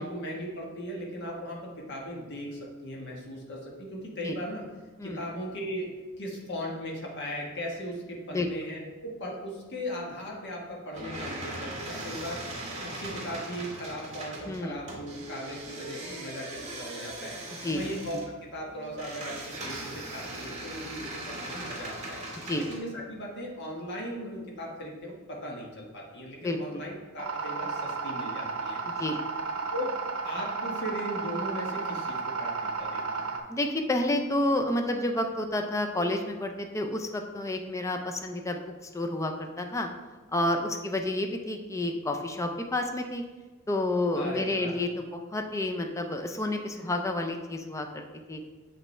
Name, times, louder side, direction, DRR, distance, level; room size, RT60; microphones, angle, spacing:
voice 1, 0.0-4.6 5.0-5.9 6.2-12.4 12.8-17.3 17.7-22.2 22.6-28.8 29.7-30.0 30.2-33.3 44.1-44.7 46.7-46.9, equal, 50° left, -2 dB, 1.3 m, -38 dB
sound 1, 10.9-22.8, right 1 dB, 30° right, 1.8 m, -39 dB
voice 2, 14.5-14.8 17.6-17.8 18.1-18.2 22.5-22.7 26.4-26.8 28.8-29.2 33.5-38.6 38.9-39.9 40.3-43.2 43.7-48.4, left 1 dB, 15° left, 4 dB, 0.4 m, -30 dB
sound 2, 27.2-33.4, right 4 dB, 70° right, 0.8 m, -33 dB
7.3 x 5.2 x 3.2 m, 1.3 s
head